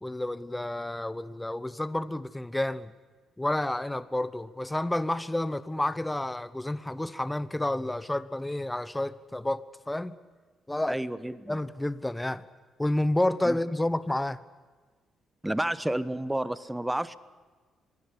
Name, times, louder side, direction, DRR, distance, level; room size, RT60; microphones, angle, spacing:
voice 1, 0.0-2.9 3.4-10.1 10.7-11.0 11.5-12.4 12.8-14.4, left 1 dB, 10° left, 1.0 m, -30 dB
voice 2, 10.9-11.6 13.4-13.6 15.4-17.2, right 1 dB, 10° right, 1.0 m, -30 dB
23.0 x 17.0 x 9.9 m
hypercardioid pair, 50°, 0 cm